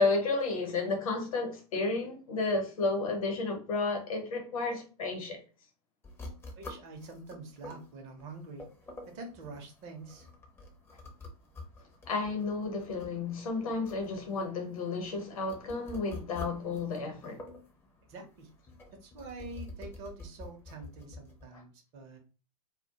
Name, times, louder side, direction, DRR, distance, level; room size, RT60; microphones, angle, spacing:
voice 1, 0.0-5.4 12.1-17.4 21.5-21.6, left 3 dB, 65° left, 0.8 m, -32 dB
sound 1, 6.0-21.4, left 2 dB, 10° left, 0.5 m, -49 dB
voice 2, 6.6-8.6 9.1-10.3 18.1-18.5 19.0-22.2, right 2 dB, 35° right, 0.6 m, -46 dB
2.1 x 2.1 x 2.8 m
figure-of-eight pair, 95°, 19 cm